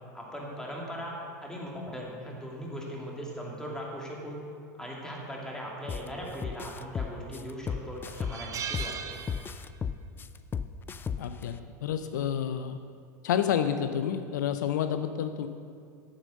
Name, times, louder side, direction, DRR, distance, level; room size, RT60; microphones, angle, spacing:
voice 1, 0.1-1.1 1.4-4.4 4.8-9.2, equal, 5° left, -2 dB, 2.6 m, -39 dB
sound 1, 5.9-6.1 6.4-8.9 9.3-11.4, left 6 dB, 20° left, 0.4 m, -33 dB
sound 2, 7.0-7.3 7.6-7.7 8.1-10.0 10.2-10.5 11.7-12.0, right 8 dB, 35° right, 0.7 m, -39 dB
voice 2, 11.2-12.8 13.2-15.5, left 9 dB, 75° left, 9 dB, 0.5 m, -29 dB
9.1 x 7.6 x 6.3 m, 2.3 s
hypercardioid pair, 90°, 10 cm